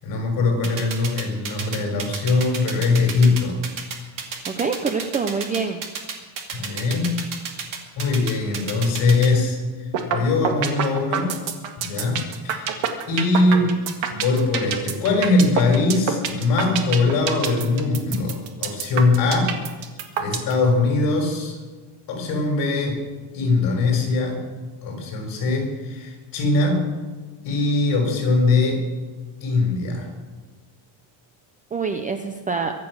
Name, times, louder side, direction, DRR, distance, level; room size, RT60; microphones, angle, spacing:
voice 1, 0.0-3.6 6.5-7.2 8.0-11.3 11.8-12.7 13.1-13.8 14.1-19.6 20.2-21.6 22.1-23.0 23.3-24.4 24.8-26.9 27.4-28.8 29.4-30.1, left 3 dB, 45° left, 1 dB, 6.0 m, -21 dB
sound 1, 0.6-9.3, right 6 dB, 40° right, 2.3 m, -31 dB
voice 2, 4.5-5.8 31.7-32.7, right 5 dB, 15° right, 6 dB, 0.5 m, -25 dB
sound 2, 9.9-10.2 10.4-20.5, right 8 dB, 65° right, 2.0 m, -25 dB
23.0 x 8.4 x 6.3 m, 1.3 s
cardioid pair, 175°, 48 cm